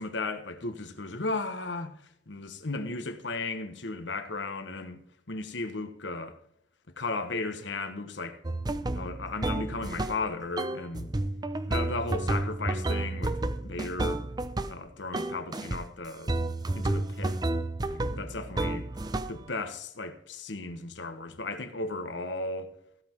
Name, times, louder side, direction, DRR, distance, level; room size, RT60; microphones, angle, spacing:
voice 1, 0.0-2.0 2.3-5.0 5.3-6.3 7.0-8.4 8.9-11.1 11.7-13.4 13.6-14.2 14.7-16.3 16.7-17.4 17.9-18.9 19.3-22.7, left 3 dB, 85° left, 1.3 m, -35 dB
sound 1, 8.4-10.3 10.6-14.8 15.1-15.9 16.3-19.5, right 2 dB, 20° right, 0.6 m, -31 dB
16.0 x 5.9 x 4.5 m
head